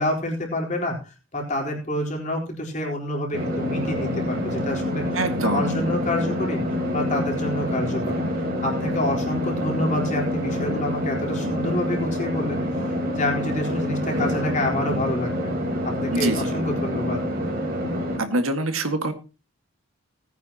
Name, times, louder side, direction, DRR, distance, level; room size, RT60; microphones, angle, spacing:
voice 1, 0.0-5.0 5.4-6.6 6.9-8.2 8.6-12.6 13.1-15.5 15.8-17.2, left 1 dB, 35° left, 0 dB, 4.2 m, -28 dB
sound 1, 3.3-18.2, left 1 dB, 45° right, 3.9 m, -27 dB
voice 2, 5.2-5.9 16.1-16.6 18.2-19.1, right 2 dB, 85° right, 7 dB, 1.9 m, -25 dB
19.0 x 9.6 x 2.9 m, 0.32 s
head